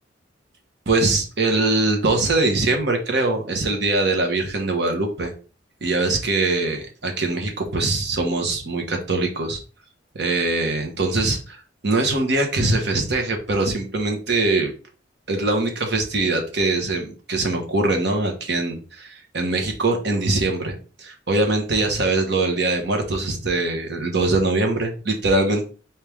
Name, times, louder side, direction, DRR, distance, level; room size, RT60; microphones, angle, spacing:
voice 1, 0.9-5.3 5.8-9.6 10.1-14.7 15.3-25.7, right 2 dB, 65° right, 3 dB, 1.2 m, -22 dB
4.4 x 3.4 x 3.5 m, 0.36 s
head